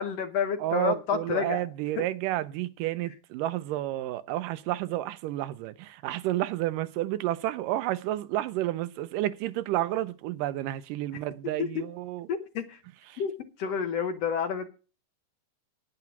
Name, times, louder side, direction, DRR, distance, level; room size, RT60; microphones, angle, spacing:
voice 1, 0.0-1.6 2.0-2.1 11.6-11.7 12.3-12.8 13.2-13.3 13.6-14.7, left 7 dB, 65° left, 1.7 m, -29 dB
voice 2, 0.6-12.3 13.1-13.2, right 14 dB, 85° right, 2.3 m, -31 dB
9.9 x 9.3 x 5.9 m
omnidirectional pair, 3.7 m